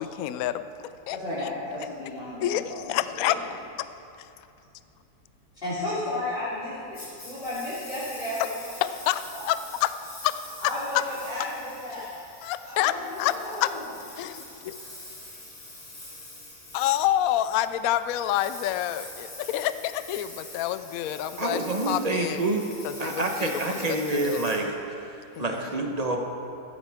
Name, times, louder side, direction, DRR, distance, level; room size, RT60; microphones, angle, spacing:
voice 1, 0.0-1.5 2.4-3.4 8.8-9.9 10.2-10.3 10.9-11.0 12.0-12.1 12.4-12.9 13.2-13.3 13.6-13.7 14.2-14.7 16.7-21.6 21.9-22.4 23.0-24.0 24.2-24.4 25.4-25.5, left 13 dB, 75° left, 12 dB, 0.8 m, -28 dB
voice 2, 1.1-2.9 3.2-3.5 5.5-8.6 9.3-9.5 10.6-12.1 12.6-13.9, left 1 dB, 30° left, -13 dB, 3.6 m, -33 dB
Engine, 6.9-25.4, left 2 dB, 55° left, 3.8 m, -44 dB
voice 3, 21.4-22.6 23.0-26.2, right 2 dB, 30° right, 2 dB, 0.8 m, -28 dB
15.5 x 14.0 x 3.6 m, 2.7 s
omnidirectional pair, 2.0 m